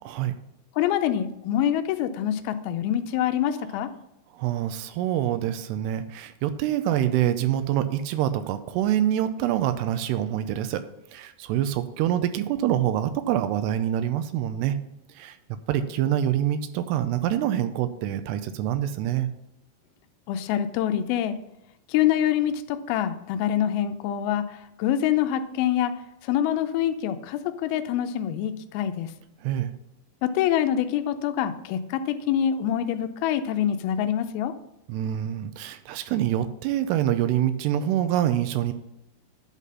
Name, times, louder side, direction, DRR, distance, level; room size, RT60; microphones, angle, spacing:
voice 1, 0.8-3.9 20.3-21.4 21.9-29.1 30.2-34.5, left 10 dB, 80° left, 8 dB, 2.2 m, -25 dB
voice 2, 4.3-10.9 11.1-14.8 15.1-15.4 15.7-19.3 29.4-29.7 34.9-38.7, right 11 dB, 85° right, 11 dB, 2.6 m, -26 dB
11.0 x 4.1 x 6.1 m, 0.88 s
omnidirectional pair, 4.9 m